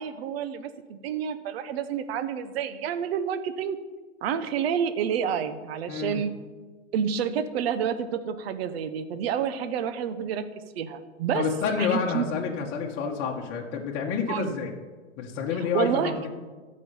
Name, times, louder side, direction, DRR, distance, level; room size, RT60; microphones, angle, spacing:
voice 1, 0.0-3.8 4.2-6.3 6.9-10.4 10.7-11.4 11.8-12.3 14.3-14.5 15.7-16.1, right 8 dB, 55° right, 11 dB, 1.0 m, -29 dB
voice 2, 5.9-6.2 11.3-14.7 15.2-16.3, left 5 dB, 30° left, -1 dB, 1.4 m, -28 dB
13.0 x 5.5 x 7.0 m, 1.3 s
hypercardioid pair, 130°, 37 cm